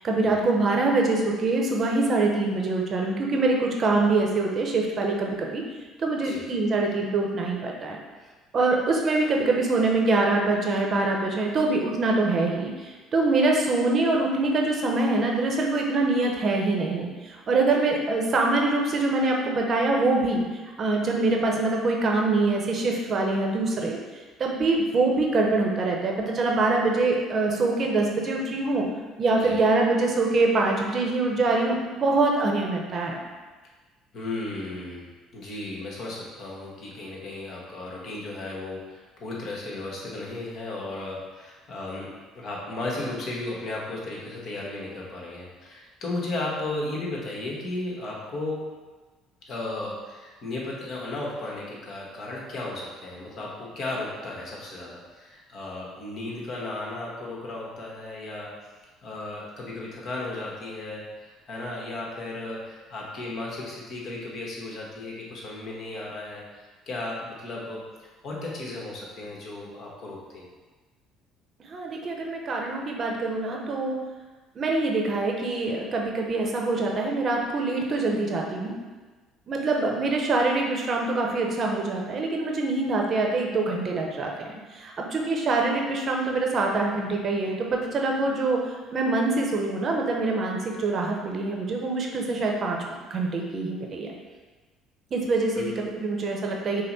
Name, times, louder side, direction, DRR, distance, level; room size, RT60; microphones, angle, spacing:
voice 1, 0.0-5.6 6.0-8.0 8.5-20.4 20.8-24.0 24.4-28.8 29.2-33.2 71.6-74.0 74.6-78.7 79.5-84.3 84.7-88.6 88.9-92.8 93.1-94.1 95.1-96.8, right 3 dB, 45° right, 0 dB, 0.7 m, -24 dB
voice 2, 34.1-42.1 42.3-48.6 49.5-58.5 59.0-70.5 95.5-95.7, left 2 dB, 55° left, -3 dB, 1.2 m, -35 dB
5.4 x 2.1 x 4.0 m, 1.3 s
supercardioid pair, 90°, 0 cm